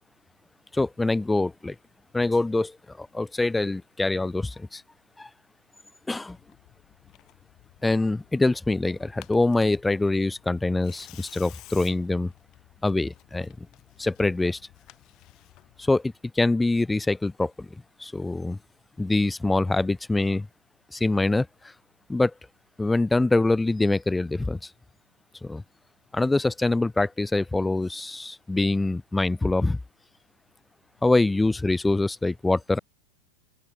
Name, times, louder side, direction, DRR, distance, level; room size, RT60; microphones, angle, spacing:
voice 1, 0.7-1.8 2.1-4.8 5.2-5.3 6.1-6.4 7.8-12.3 12.8-13.7 14.0-14.6 15.8-17.7 18.0-18.6 19.0-20.5 20.9-21.5 22.1-22.3 22.8-24.7 25.4-25.6 26.1-29.8 31.0-32.8, left 2 dB, 5° left, 0.5 m, -24 dB
Tearing, 6.3-15.9, left 18 dB, 40° left, 1.9 m, -53 dB
open air
figure-of-eight pair, 90°, 0 cm